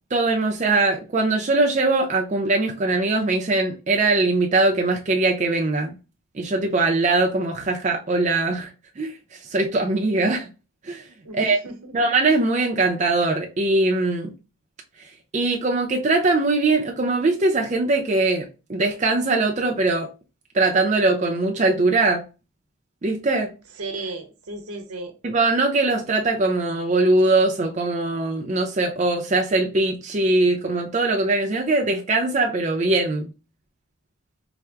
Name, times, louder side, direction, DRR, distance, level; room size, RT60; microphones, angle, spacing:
voice 1, 0.1-6.0 6.3-9.1 9.5-10.5 10.9-11.1 11.3-11.6 11.9-14.3 15.3-20.1 20.5-22.2 23.0-23.5 25.2-33.3, right 2 dB, 30° right, 0.4 m, -21 dB
voice 2, 11.2-11.9 23.8-25.1, right 2 dB, 85° right, 0.9 m, -35 dB
4.4 x 2.0 x 3.5 m
head